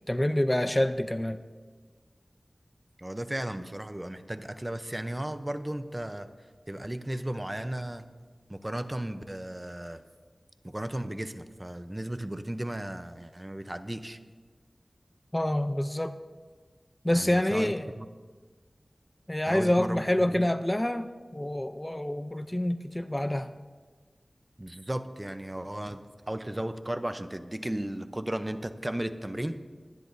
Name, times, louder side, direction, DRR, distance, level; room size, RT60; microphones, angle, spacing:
voice 1, 0.1-1.4 15.3-16.1 17.0-17.9 19.3-23.5, left 1 dB, 20° left, 9 dB, 0.6 m, -27 dB
voice 2, 3.0-6.3 6.7-8.1 8.5-10.0 10.6-14.2 17.1-18.1 19.5-20.0 20.3-20.5 24.6-26.0 26.3-29.6, right 1 dB, 25° right, 10 dB, 0.7 m, -35 dB
22.5 x 10.0 x 2.7 m, 1.4 s
wide cardioid pair, 45°, 0 cm